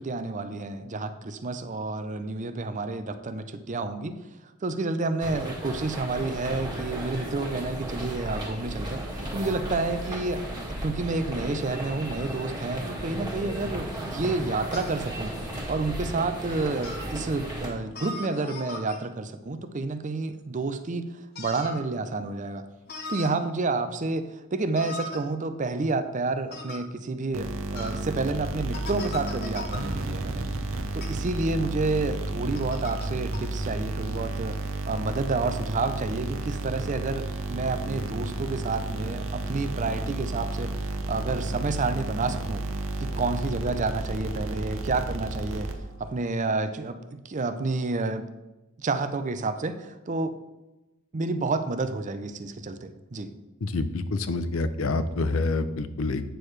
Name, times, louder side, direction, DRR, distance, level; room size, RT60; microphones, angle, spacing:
voice 1, 0.0-4.1 4.6-15.3 15.7-21.1 21.4-22.6 23.1-30.5 30.9-34.6 34.9-40.7 41.1-42.6 43.0-45.7 46.0-48.3 48.8-50.3 51.1-53.3, right 3 dB, 35° right, 10 dB, 0.5 m, -29 dB
sound 1, 5.2-17.7, right 1 dB, 20° right, 1.8 m, -35 dB
sound 2, 13.9-14.1 14.7-15.0 15.7-15.8 16.8-17.1 17.9-19.0 21.4-21.8 22.9-23.3 24.7-25.2 26.5-26.8 27.8-28.0 28.7-29.8 31.0-31.1 32.5-33.1 33.3-33.4, left 2 dB, 45° left, 1.2 m, -38 dB
sound 3, 27.3-46.1, right 2 dB, 65° right, 0.8 m, -32 dB
voice 2, 53.6-56.2, left 3 dB, 65° left, 12 dB, 0.6 m, -27 dB
9.1 x 6.5 x 3.2 m, 1.0 s
head